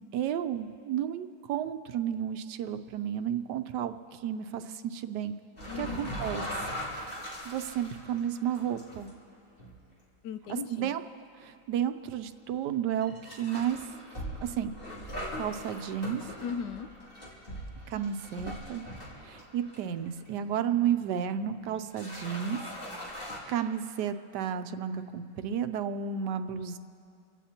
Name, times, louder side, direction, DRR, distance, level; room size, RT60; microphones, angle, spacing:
voice 1, 0.1-5.3 5.8-6.4 7.4-9.1 10.7-11.0 11.4-13.8 14.4-14.7 15.4-16.2 17.9-18.8 19.2-22.6 23.5-26.8, right 9 dB, 85° right, 10 dB, 1.3 m, -32 dB
sound 1, 5.6-9.1 9.6-9.7 10.4-10.6 11.4-11.5 13.0-20.3 20.7-20.8 21.6-21.7 21.9-23.4, equal, 35° left, 3.1 m, -40 dB
voice 2, 5.7-6.2 6.5-6.6 10.2-11.0 16.4-16.9, left 7 dB, 85° left, 10 dB, 1.3 m, -38 dB
28.5 x 16.5 x 2.9 m, 2.5 s
omnidirectional pair, 1.8 m